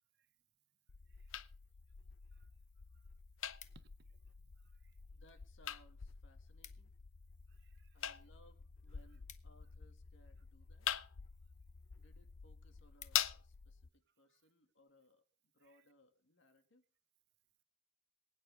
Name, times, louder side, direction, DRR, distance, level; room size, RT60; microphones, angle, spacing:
sound 1, 0.9-13.9, left 10 dB, 85° left, 0.7 m, -45 dB
sound 2, 3.0-4.2 4.9-5.4 5.7-5.8 6.1-6.2 6.4-7.0 7.4-10.2 11.0-11.3 11.8-11.9 12.2-12.3 12.6-13.6 14.1-14.3, left 10 dB, 40° left, 0.9 m, -60 dB
voice 1, 3.6-4.2 4.6-4.9 7.5-8.0 10.9-11.0 15.6-15.8, right 4 dB, 55° right, 0.8 m, -69 dB
voice 2, 5.1-6.9 7.9-10.9 12.0-15.2 15.5-16.8, left 1 dB, 65° left, 2.2 m, -68 dB
23.0 x 9.2 x 3.6 m
head